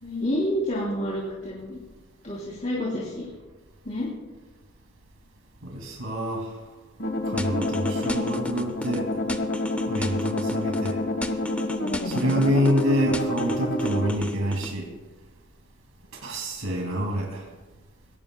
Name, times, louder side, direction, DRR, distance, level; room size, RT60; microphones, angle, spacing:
voice 1, 0.0-1.8 2.2-3.3 3.8-4.1, equal, 40° left, -4 dB, 2.9 m, -29 dB
voice 2, 5.6-6.5 7.2-9.1 9.9-11.0 12.0-14.9 16.2-17.5, equal, 90° right, 0 dB, 2.5 m, -26 dB
sound 1, 7.0-14.1, left 1 dB, 55° left, 1.3 m, -28 dB
sound 2, 7.4-9.0 9.3-10.9 11.2-12.8 13.1-14.7, left 1 dB, 5° left, 0.6 m, -34 dB
21.0 x 17.5 x 2.3 m, 1.2 s
head